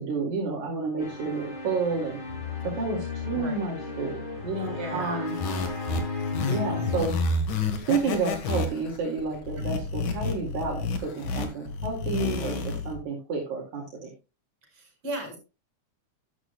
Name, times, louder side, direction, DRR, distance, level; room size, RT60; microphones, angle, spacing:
voice 1, 0.0-2.2 2.6-5.4 6.5-7.1 7.9-14.1, right 4 dB, 70° right, -2 dB, 3.7 m, -30 dB
sound 1, 1.0-7.0, left 4 dB, 15° left, 2.9 m, -35 dB
voice 2, 3.3-3.6 4.6-5.2 9.6-9.8 14.7-15.4, right 1 dB, 45° right, 3 dB, 6.7 m, -36 dB
sound 2, 5.3-13.0, left 3 dB, 70° left, 3.1 m, -30 dB
12.5 x 11.0 x 2.3 m, 0.30 s
omnidirectional pair, 3.6 m